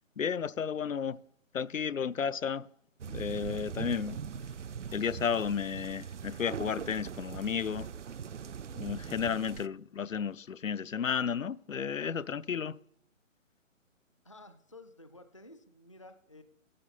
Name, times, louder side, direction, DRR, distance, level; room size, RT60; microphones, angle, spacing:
voice 1, 0.2-1.2 1.5-2.7 3.1-4.2 4.9-7.9 8.7-12.8, left 7 dB, 75° left, 0.6 m, -33 dB
sound 1, 3.0-9.7, right 7 dB, 60° right, 0.5 m, -41 dB
voice 2, 14.2-16.4, left 2 dB, 25° left, 0.4 m, -53 dB
15.0 x 12.5 x 4.1 m
figure-of-eight pair, 145°, 40 cm